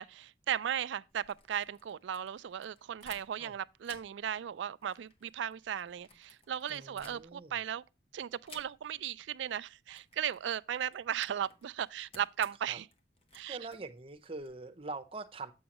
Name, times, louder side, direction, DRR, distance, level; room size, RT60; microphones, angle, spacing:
voice 1, 0.0-7.8 8.1-12.9 13.3-13.6, right 9 dB, 80° right, 0.3 m, -36 dB
sound 1, 1.1-3.5 3.8-7.6 8.4-9.1 9.4-9.6 9.9-14.5, left 3 dB, 30° left, 0.9 m, -57 dB
voice 2, 6.7-7.6 12.7-12.8 13.5-15.5, right 3 dB, 30° right, 0.7 m, -44 dB
7.9 x 6.3 x 2.9 m
head